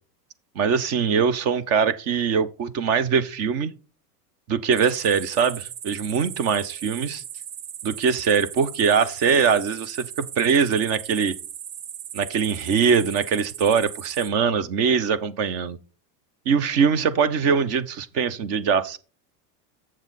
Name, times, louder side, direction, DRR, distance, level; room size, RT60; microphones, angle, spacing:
voice 1, 0.6-3.7 4.5-7.2 7.8-11.3 12.1-15.8 16.5-19.0, right 6 dB, 30° right, 0.5 m, -22 dB
sound 1, 4.7-14.3, right 10 dB, 75° right, 1.4 m, -38 dB
7.3 x 7.2 x 4.0 m
supercardioid pair, 140°, 50 cm